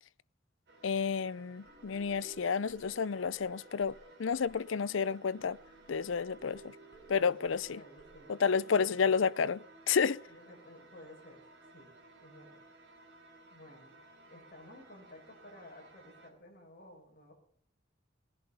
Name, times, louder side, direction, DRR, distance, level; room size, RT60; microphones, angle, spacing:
sound 1, 0.7-16.3, right 2 dB, 60° right, 3.4 m, -58 dB
voice 1, 0.8-5.6 5.9-6.7 7.1-7.8 8.3-10.2, left 6 dB, 75° left, 0.5 m, -31 dB
sound 2, 1.6-8.5, right 2 dB, 25° left, 6.6 m, -58 dB
voice 2, 7.2-8.4 8.7-9.1 10.3-11.4 11.7-12.6 13.5-13.9 14.3-17.3, left 1 dB, 45° left, 6.4 m, -55 dB
19.5 x 11.0 x 5.6 m
head